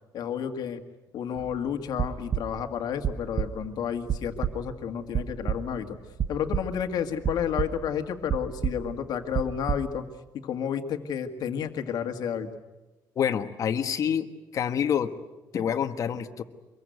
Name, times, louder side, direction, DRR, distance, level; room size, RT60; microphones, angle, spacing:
voice 1, 0.1-0.8 1.1-6.0 6.3-10.1 10.4-12.5, left 8 dB, 65° left, 6 dB, 1.9 m, -31 dB
sound 1, 1.4-1.6 1.9-2.7 3.0-3.7 4.1-4.7 5.1-5.9 6.2-6.8 7.2-8.0 8.3-9.9, right 8 dB, 40° right, 0.8 m, -30 dB
voice 2, 13.2-15.1 15.5-16.4, left 8 dB, 45° left, 8 dB, 1.4 m, -27 dB
25.0 x 22.5 x 9.3 m, 1.1 s
cardioid pair, 165°, 7 cm